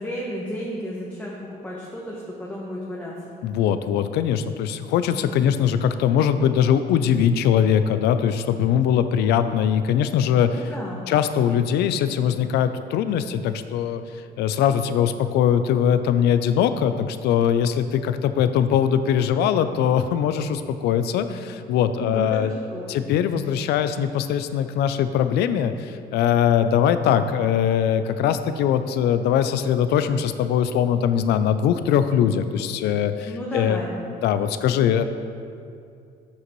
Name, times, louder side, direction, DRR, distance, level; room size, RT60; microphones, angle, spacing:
voice 1, 0.0-3.1 10.4-11.1 21.9-23.0 33.2-34.0, equal, 10° left, -5 dB, 1.1 m, -32 dB
voice 2, 3.4-10.6 11.1-14.0 14.4-22.5 22.9-33.8 34.2-35.0, left 9 dB, 80° left, 11 dB, 0.5 m, -21 dB
11.0 x 6.6 x 3.1 m, 2.4 s
cardioid pair, 110°, 17 cm